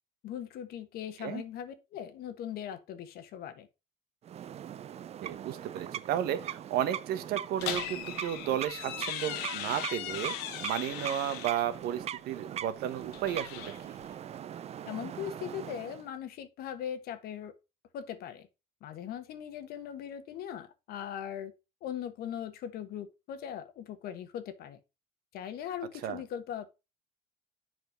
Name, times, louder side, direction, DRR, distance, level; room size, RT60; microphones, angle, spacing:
voice 1, 0.2-3.7 14.9-17.5 17.9-18.5 18.8-21.5 21.8-24.8 25.3-26.8, left 9 dB, 65° left, 1.3 m, -40 dB
sound 1, 4.2-16.1, right 9 dB, 40° right, 0.5 m, -41 dB
voice 2, 5.2-10.3 10.6-14.0 26.0-26.2, right 11 dB, 70° right, 1.2 m, -33 dB
sound 2, 7.6-11.7 13.0-14.1, left 11 dB, 85° left, 1.0 m, -39 dB
7.5 x 5.1 x 5.1 m
cardioid pair, 105°, 17 cm